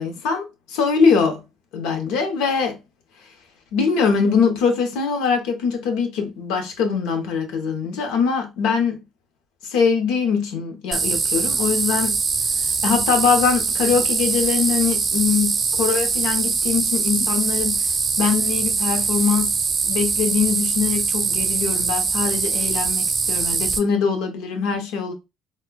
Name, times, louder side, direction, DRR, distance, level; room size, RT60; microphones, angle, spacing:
voice 1, 0.0-1.4 1.7-2.8 3.7-9.0 9.7-12.2 12.8-17.8 18.2-19.5 19.8-25.1, left 6 dB, 85° left, 0.8 m, -22 dB
sound 1, 10.9-23.8, right 4 dB, 35° right, 0.6 m, -22 dB
4.2 x 2.2 x 2.2 m
cardioid pair, 90°, 0 cm